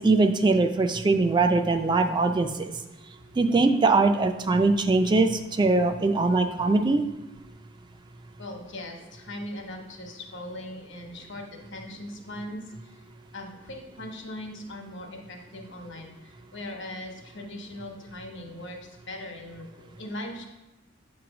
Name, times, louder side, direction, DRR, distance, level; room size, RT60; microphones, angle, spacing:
voice 1, 0.0-2.5 3.4-7.0, right 3 dB, 25° right, 6 dB, 0.3 m, -22 dB
voice 2, 8.4-13.0 13.3-20.5, left 1 dB, 65° left, 3 dB, 1.2 m, -40 dB
7.7 x 3.1 x 6.0 m, 1.1 s
head